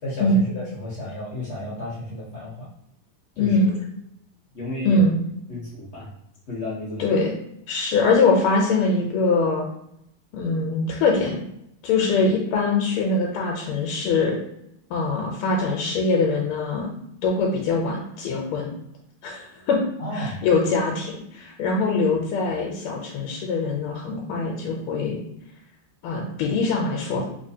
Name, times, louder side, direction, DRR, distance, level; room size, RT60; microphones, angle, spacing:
voice 1, 0.0-2.7 3.4-3.7 4.5-5.0 5.5-6.1 6.5-7.1 20.0-20.4, left 1 dB, 50° left, -6 dB, 0.8 m, -32 dB
voice 2, 3.4-3.7 4.8-5.2 7.0-7.3 7.7-9.6 10.3-11.4 11.8-14.4 14.9-16.9 17.2-18.7 19.2-19.8 20.1-25.2 26.0-27.3, left 3 dB, 90° left, -1 dB, 1.5 m, -22 dB
3.7 x 2.8 x 2.7 m, 0.78 s
omnidirectional pair, 2.4 m